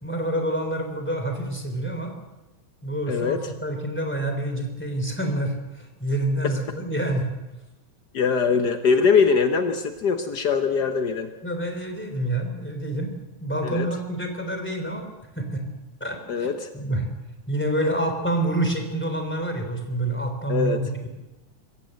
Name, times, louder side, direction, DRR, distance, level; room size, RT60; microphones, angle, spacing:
voice 1, 0.0-2.1 2.8-7.3 11.4-13.1 13.4-15.1 15.3-15.6 16.0-16.5 16.7-17.1 17.5-21.1, right 1 dB, 5° left, 4 dB, 3.1 m, -27 dB
voice 2, 3.1-3.4 6.4-6.5 8.1-11.3 13.6-13.9 16.3-16.7 20.5-20.8, left 5 dB, 80° left, 7 dB, 0.9 m, -22 dB
25.0 x 15.0 x 7.9 m, 1.1 s
omnidirectional pair, 3.6 m